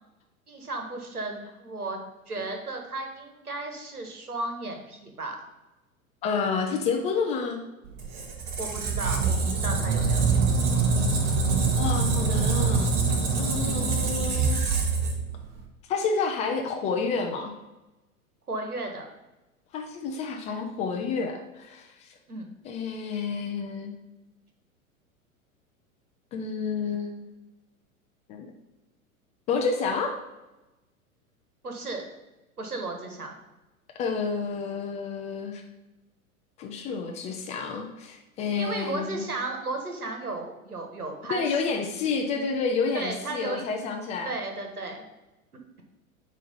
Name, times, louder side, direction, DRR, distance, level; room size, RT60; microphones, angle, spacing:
voice 1, 0.5-5.4 8.6-10.6 18.5-19.1 22.3-22.5 31.6-32.0 32.6-33.4 38.6-41.8 42.9-43.6 44.2-45.0, right 2 dB, 85° right, 3 dB, 1.4 m, -34 dB
voice 2, 6.2-7.6 11.2-11.4 11.7-12.9 13.4-14.6 15.9-17.5 19.7-22.1 22.6-24.0 26.3-27.3 28.3-28.5 29.5-30.1 34.0-35.6 36.6-39.2 41.3-44.3, left 5 dB, 15° left, 3 dB, 0.4 m, -29 dB
Squeak, 7.9-15.6, right 4 dB, 35° right, 1.5 m, -25 dB
9.0 x 3.1 x 5.4 m, 1.0 s
figure-of-eight pair, 100°, 44 cm